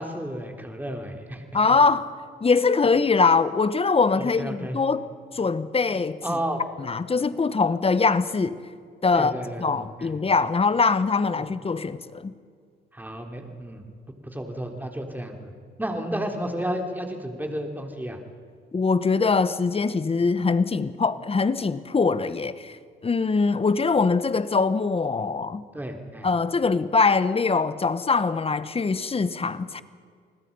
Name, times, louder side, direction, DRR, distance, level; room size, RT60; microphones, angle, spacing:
voice 1, 0.0-1.4 4.2-4.8 6.2-6.6 9.1-10.1 11.3-11.5 12.9-13.9 14.2-15.5 15.8-18.2 25.7-26.3, right 1 dB, 10° right, 3.7 m, -32 dB
voice 2, 1.5-2.1 2.4-6.4 6.8-8.6 9.0-9.3 9.6-12.3 18.7-22.8 23.0-25.6 26.2-29.8, left 4 dB, 30° left, 1.2 m, -23 dB
28.5 x 20.5 x 5.5 m
cardioid pair, 90°, 20 cm